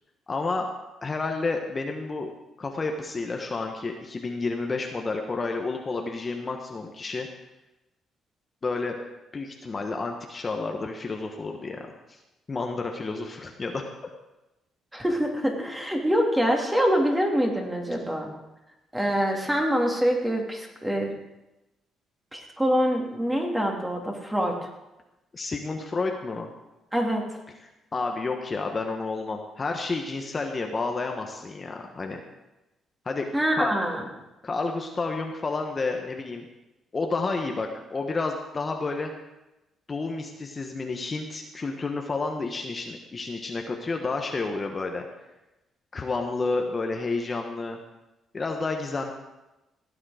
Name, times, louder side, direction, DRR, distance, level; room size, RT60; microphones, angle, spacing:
voice 1, 0.3-0.7 1.0-2.3 2.6-7.3 8.6-8.9 9.3-12.2 12.5-14.1 25.3-26.5 27.9-32.2 33.0-33.2 33.5-33.7 34.4-36.4 36.9-39.1 39.9-45.0 45.9-47.8 48.3-49.1, left 3 dB, 30° left, 3 dB, 1.3 m, -30 dB
voice 2, 14.9-18.3 18.9-21.1 22.3-24.7 26.9-27.2 33.3-34.0, equal, 10° right, 1 dB, 2.7 m, -25 dB
16.5 x 8.7 x 5.0 m, 0.99 s
cardioid pair, 90°, 0 cm